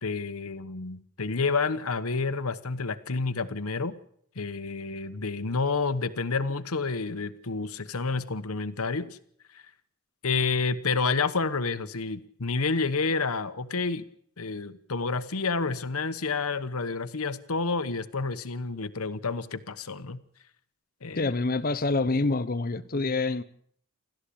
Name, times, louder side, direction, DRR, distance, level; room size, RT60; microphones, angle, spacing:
voice 1, 0.0-3.9 4.4-9.2 9.5-9.6 10.2-14.0 14.4-20.2 21.0-21.3, left 4 dB, 85° left, 1.1 m, -29 dB
voice 2, 21.1-23.4, left 3 dB, 40° left, 0.8 m, -26 dB
28.5 x 13.5 x 8.6 m
head